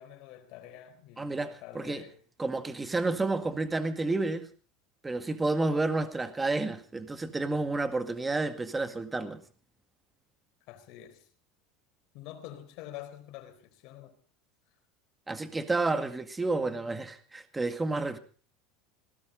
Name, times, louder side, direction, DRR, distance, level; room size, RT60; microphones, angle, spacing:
voice 1, 0.0-2.2 10.7-11.3 12.1-14.1, left 12 dB, 65° left, 4.3 m, -47 dB
voice 2, 1.2-2.0 2.4-4.5 5.0-9.4 15.3-18.2, right 3 dB, 15° right, 1.9 m, -30 dB
19.5 x 18.0 x 3.9 m
supercardioid pair, 120°, 0 cm